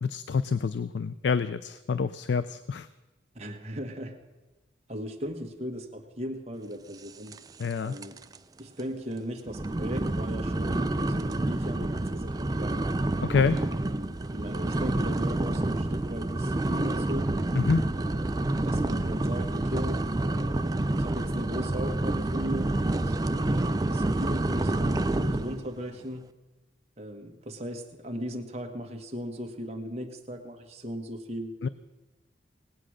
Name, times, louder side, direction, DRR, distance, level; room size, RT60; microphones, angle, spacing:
voice 1, 0.0-2.9 7.6-8.0 13.2-13.6 17.6-17.9 31.6-31.7, left 5 dB, 75° left, 15 dB, 0.4 m, -27 dB
voice 2, 3.3-4.2 4.9-7.4 7.8-8.2 8.6-13.0 13.7-17.3 18.0-20.1 20.3-26.3 27.0-31.6, equal, 35° right, 3 dB, 1.5 m, -37 dB
sound 1, 7.3-7.7 8.0-8.4 8.8-8.9 9.5-25.6, right 2 dB, 20° right, 0.4 m, -28 dB
18.5 x 8.6 x 6.4 m, 1.1 s
head